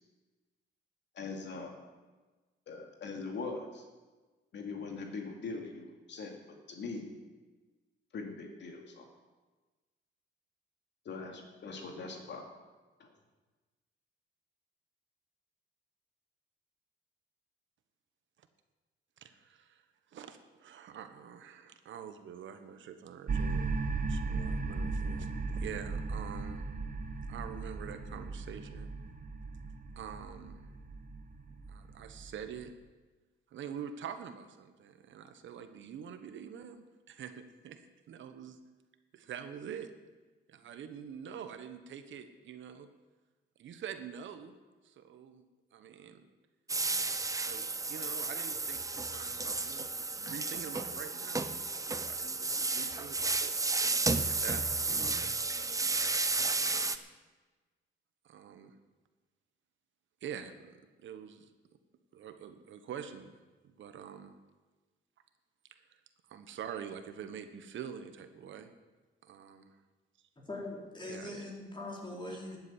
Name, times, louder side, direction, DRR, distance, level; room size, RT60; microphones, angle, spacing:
voice 1, 1.1-1.7 2.7-3.8 4.5-6.4 6.7-7.1 8.1-9.1 11.0-12.5 13.0-13.1, left 4 dB, 65° left, 2 dB, 2.5 m, -41 dB
voice 2, 19.2-19.8 20.1-23.8 24.1-26.6 27.3-28.9 30.0-30.6 31.7-32.7 33.5-37.8 38.1-38.6 39.1-39.9 40.5-42.9 43.6-44.6 44.8-45.4 45.7-46.3 47.4-47.6 47.9-49.9 50.1-57.0 58.2-58.8 60.2-61.5 62.1-63.3 63.6-64.3 65.9-66.0 66.3-68.7 69.2-69.8 71.0-71.4 72.3-72.4, right 8 dB, 75° right, 9 dB, 1.2 m, -46 dB
sound 1, 23.3-32.6, right 4 dB, 45° right, 1.2 m, -37 dB
sound 2, 46.7-57.0, right 3 dB, 15° right, 0.7 m, -32 dB
voice 3, 70.5-72.6, left 2 dB, 25° left, -1 dB, 4.3 m, -41 dB
12.5 x 8.5 x 8.6 m, 1.3 s
cardioid pair, 100°, 20 cm